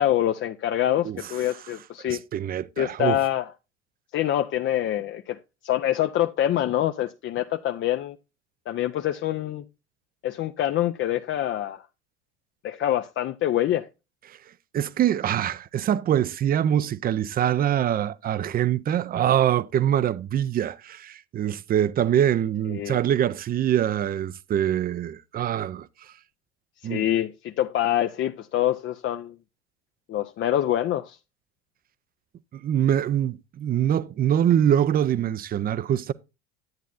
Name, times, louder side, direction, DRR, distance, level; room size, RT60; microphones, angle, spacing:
voice 1, 0.0-2.2 2.8-3.5 4.1-5.4 5.6-8.2 8.7-9.6 10.2-11.8 12.6-13.9 22.7-23.0 26.8-29.3 30.1-31.2, left 12 dB, 35° left, 0.5 m, -25 dB
voice 2, 2.0-3.2 14.3-14.4 14.7-25.9 26.8-27.0 32.5-36.1, right 10 dB, 25° right, 0.5 m, -24 dB
10.5 x 9.2 x 2.5 m
hypercardioid pair, 70°, 35 cm